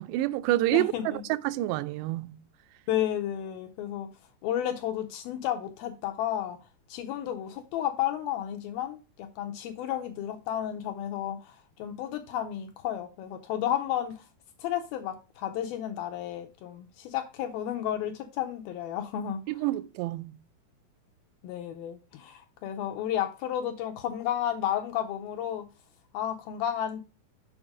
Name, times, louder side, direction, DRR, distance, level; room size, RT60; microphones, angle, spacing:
voice 1, 0.0-2.4 19.5-20.4, right 16 dB, 90° right, 2.7 m, -28 dB
voice 2, 0.7-1.2 2.9-4.1 4.4-6.6 6.9-14.2 14.6-19.4 21.4-25.7 26.1-27.0, left 11 dB, 80° left, 2.3 m, -32 dB
7.2 x 5.1 x 4.7 m
omnidirectional pair, 4.8 m